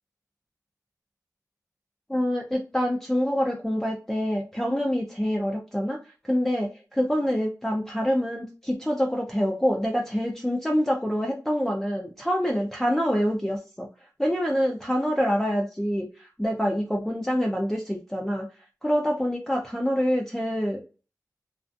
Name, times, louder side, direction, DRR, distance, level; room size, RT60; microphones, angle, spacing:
voice 1, 2.1-13.9 14.2-18.5 18.8-20.8, equal, 5° left, -2 dB, 0.5 m, -26 dB
2.3 x 2.3 x 2.5 m, 0.34 s
cardioid pair, 40°, 7 cm